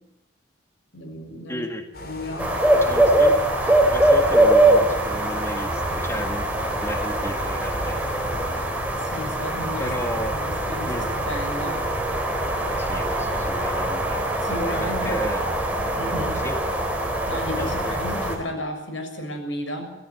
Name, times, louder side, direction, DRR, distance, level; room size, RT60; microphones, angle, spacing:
voice 1, 0.9-1.6 2.0-2.5 9.0-11.8 14.4-15.2 15.9-16.4 17.3-19.9, left 1 dB, 80° left, 5 dB, 6.7 m, -33 dB
voice 2, 1.5-1.9 2.8-6.5 6.8-8.0 9.8-10.4 10.9-11.1 12.8-14.5 15.0-15.5 16.4-16.6 17.6-18.0, equal, 15° left, 5 dB, 1.7 m, -33 dB
sound 1, 1.9-8.6, left 1 dB, 50° left, 3.9 m, -39 dB
sound 2, 2.4-18.4, right 1 dB, 10° right, 3.9 m, -22 dB
24.0 x 15.5 x 9.6 m, 0.90 s
head